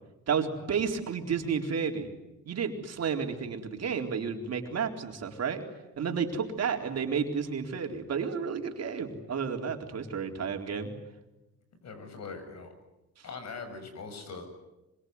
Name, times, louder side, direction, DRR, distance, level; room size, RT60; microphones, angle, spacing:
voice 1, 0.3-2.1 2.5-5.6 6.0-10.9, right 6 dB, 55° right, 3 dB, 4.1 m, -31 dB
voice 2, 11.8-12.7 13.2-14.4, left 4 dB, 60° left, 8 dB, 7.6 m, -41 dB
26.0 x 24.0 x 9.6 m, 0.98 s
cardioid pair, 90°, 30 cm